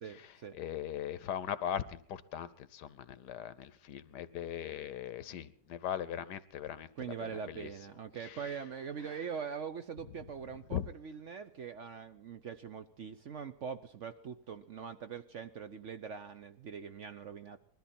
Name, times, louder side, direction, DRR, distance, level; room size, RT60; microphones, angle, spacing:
voice 1, 0.0-0.6 6.9-17.6, right 7 dB, 55° right, 9 dB, 0.9 m, -43 dB
voice 2, 0.5-6.9 7.2-7.7 8.2-8.4 10.7-10.8, left 10 dB, 75° left, 15 dB, 1.4 m, -39 dB
20.5 x 13.0 x 4.3 m, 0.62 s
omnidirectional pair, 1.9 m